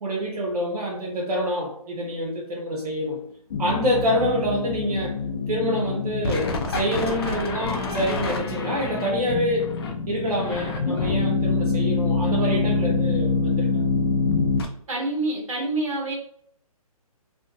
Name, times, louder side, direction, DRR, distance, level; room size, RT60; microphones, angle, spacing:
voice 1, 0.0-3.2 3.6-5.2 5.5-9.7 10.1-13.8, equal, 90° right, -1 dB, 0.6 m, -26 dB
sound 1, 3.5-14.7, left 4 dB, 40° left, 0.5 m, -25 dB
voice 2, 14.9-16.1, right 2 dB, 60° right, -2 dB, 1.3 m, -27 dB
2.6 x 2.1 x 2.3 m, 0.66 s
hypercardioid pair, 155°, 19 cm